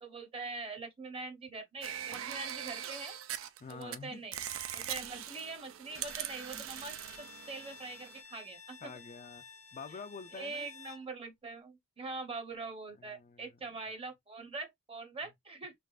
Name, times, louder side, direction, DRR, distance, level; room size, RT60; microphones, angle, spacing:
voice 1, 0.0-3.2 3.7-4.4 4.7-8.9 10.3-15.7, right 3 dB, 30° right, 0.8 m, -43 dB
sound 1, 1.8-4.0 4.3-8.2, right 10 dB, 85° right, 0.4 m, -41 dB
voice 2, 3.6-4.2 6.5-6.7 8.8-9.4 9.7-10.7 13.0-13.6, left 5 dB, 35° left, 0.3 m, -47 dB
Bowed string instrument, 5.9-11.1, left 5 dB, 80° left, 0.9 m, -53 dB
3.3 x 3.0 x 2.3 m
head